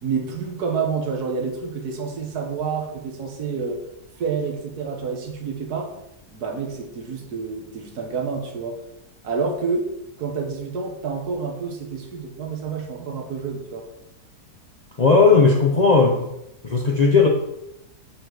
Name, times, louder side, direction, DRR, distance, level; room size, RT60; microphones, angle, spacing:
voice 1, 0.0-3.8 4.2-6.0 6.3-8.8 9.2-9.9 10.2-13.9, right 5 dB, 80° right, 3 dB, 1.6 m, -28 dB
voice 2, 15.0-16.2 16.6-17.3, left 4 dB, 45° left, 0 dB, 0.5 m, -16 dB
6.8 x 4.3 x 4.5 m, 0.85 s
omnidirectional pair, 1.7 m